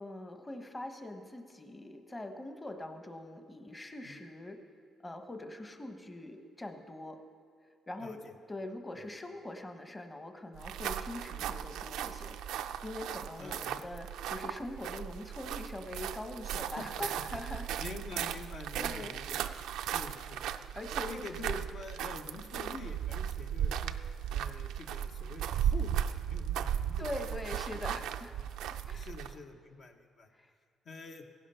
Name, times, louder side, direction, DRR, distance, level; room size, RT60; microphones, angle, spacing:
voice 1, 0.0-4.6 5.0-7.2 7.9-8.2 8.5-17.9 18.8-19.1 19.5-19.7 20.7-21.6 27.0-28.3 28.9-29.1 30.3-30.5, left 1 dB, 20° left, 6 dB, 1.0 m, -43 dB
voice 2, 8.0-8.4 8.9-9.1 13.4-13.8 16.7-16.9 17.8-19.4 19.8-20.7 21.1-24.0 24.3-27.5 27.7-28.0 28.9-30.3 30.8-31.2, left 3 dB, 60° left, 4 dB, 1.0 m, -46 dB
sound 1, 10.5-29.4, right 9 dB, 90° right, 0.4 m, -36 dB
16.0 x 11.0 x 5.6 m, 2.2 s
cardioid pair, 90°, 0 cm